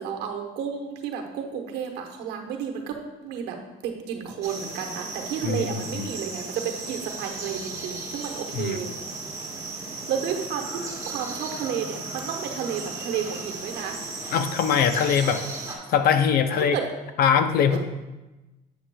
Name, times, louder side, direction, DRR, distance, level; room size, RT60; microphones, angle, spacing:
voice 1, 0.0-2.9 3.2-3.6 3.8-8.9 10.1-14.0 16.7-16.9 17.7-17.8, right 7 dB, 85° right, 3 dB, 1.0 m, -31 dB
sound 1, 4.4-15.8, right 3 dB, 20° right, 1.4 m, -36 dB
voice 2, 5.4-6.1 8.5-8.8 14.3-15.5 15.9-16.8 17.2-17.8, left 7 dB, 65° left, 10 dB, 0.6 m, -22 dB
8.2 x 7.5 x 2.2 m, 1.1 s
cardioid pair, 110°, 17 cm